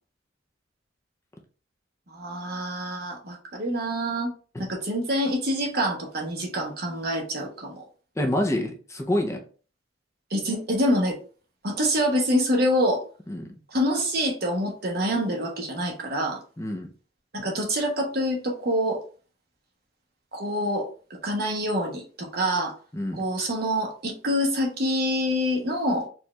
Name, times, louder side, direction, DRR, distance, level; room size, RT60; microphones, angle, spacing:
voice 1, 2.1-4.3 4.6-7.9 10.3-11.2 11.6-13.0 13.7-16.4 17.3-19.0 20.3-20.9 21.2-22.8 23.1-26.1, equal, 55° right, 1 dB, 1.0 m, -26 dB
voice 2, 8.2-9.4 13.3-13.5 16.6-16.9 22.9-23.2, left 1 dB, 15° left, 2 dB, 0.5 m, -27 dB
4.4 x 2.4 x 3.1 m, 0.39 s
head